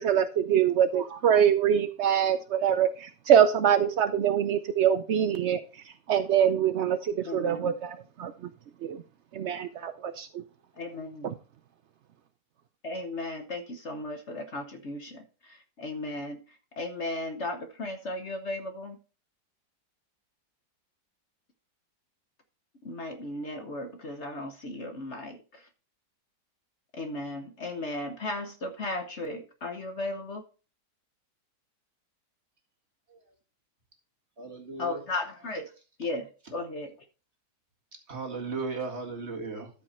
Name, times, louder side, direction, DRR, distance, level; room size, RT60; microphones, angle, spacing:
voice 1, 0.0-5.6 6.1-8.3 8.8-9.0 9.3-10.4 11.2-11.3, right 9 dB, 80° right, 10 dB, 0.6 m, -24 dB
voice 2, 7.2-7.7 10.8-11.3 12.8-15.2 15.8-16.4 16.8-19.0 22.8-25.4 26.9-30.4 34.8-35.7 36.0-36.9, left 2 dB, 45° left, 6 dB, 1.2 m, -35 dB
voice 3, 34.4-35.0 38.1-39.7, right 4 dB, 40° right, 1 dB, 2.2 m, -36 dB
13.0 x 5.4 x 4.2 m, 0.34 s
omnidirectional pair, 1.9 m